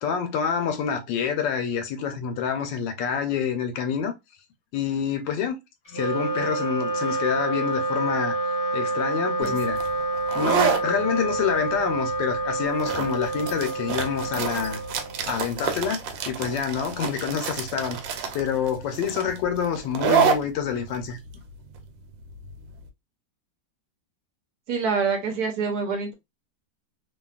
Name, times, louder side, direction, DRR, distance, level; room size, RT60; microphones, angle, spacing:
voice 1, 0.0-4.1 4.7-5.6 5.9-8.3 8.7-9.8 10.4-14.8 15.3-16.0 16.3-18.0 18.3-21.2, left 7 dB, 80° left, 1.3 m, -27 dB
Wind instrument woodwind instrument, 5.8-15.5, right 2 dB, 10° left, 1.0 m, -28 dB
sound 1, 9.4-22.8, right 7 dB, 85° right, 1.3 m, -29 dB
voice 2, 24.7-26.1, right 5 dB, 70° right, 1.0 m, -25 dB
2.8 x 2.5 x 2.3 m
omnidirectional pair, 2.0 m